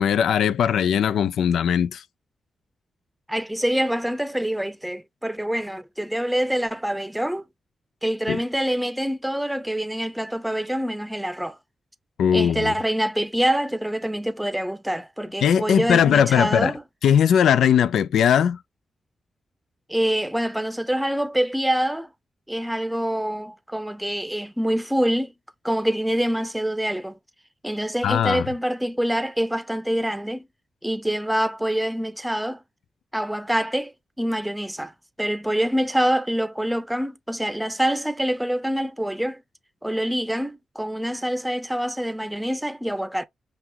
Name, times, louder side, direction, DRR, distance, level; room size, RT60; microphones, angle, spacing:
voice 1, 0.0-2.0 8.3-8.4 12.2-12.7 15.4-16.7 17.0-18.6 28.0-28.5, left 8 dB, 90° left, 0.3 m, -19 dB
voice 2, 3.3-7.4 8.0-11.6 12.3-16.8 19.9-22.1 22.5-25.3 25.6-27.2 27.6-30.5 30.8-32.6 33.1-34.9 35.2-39.4 39.8-43.2, equal, 5° right, 0.6 m, -25 dB
5.7 x 2.4 x 2.8 m
cardioid pair, 65°, 0 cm